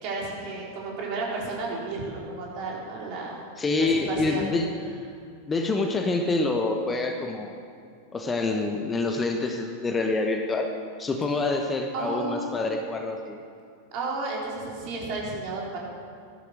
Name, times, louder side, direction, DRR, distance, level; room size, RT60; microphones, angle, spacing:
voice 1, 0.0-3.3 3.8-4.5 11.9-12.7 13.9-15.8, right 3 dB, 45° right, -3 dB, 3.9 m, -32 dB
voice 2, 3.6-4.7 5.5-7.6 8.1-10.7 11.0-13.4, left 3 dB, 15° left, 4 dB, 1.1 m, -26 dB
15.0 x 11.5 x 6.5 m, 2.4 s
figure-of-eight pair, 90°, 0 cm